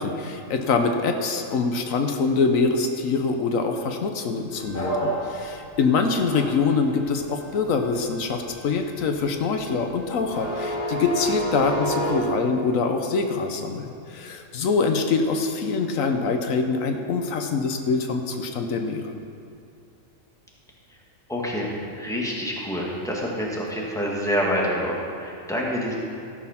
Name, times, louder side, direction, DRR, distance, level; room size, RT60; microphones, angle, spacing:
voice 1, 0.0-19.0, left 4 dB, 85° left, 5 dB, 1.3 m, -24 dB
sound 1, 4.6-12.1, right 1 dB, 40° left, 3.6 m, -30 dB
voice 2, 21.3-26.0, equal, 5° left, -4 dB, 1.7 m, -27 dB
14.0 x 6.4 x 5.7 m, 2.6 s
omnidirectional pair, 1.4 m